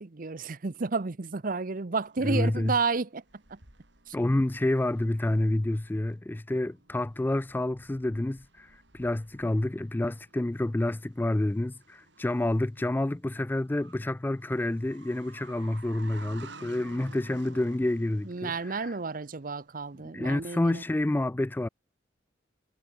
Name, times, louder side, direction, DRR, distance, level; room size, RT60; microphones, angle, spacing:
voice 1, 0.0-3.6 4.1-4.2 18.2-20.8, right 4 dB, 50° right, 0.8 m, -31 dB
sound 1, 2.0-20.0, right 3 dB, 70° right, 6.1 m, -54 dB
voice 2, 2.2-2.7 4.1-19.0 20.1-21.7, left 1 dB, 10° left, 0.3 m, -28 dB
head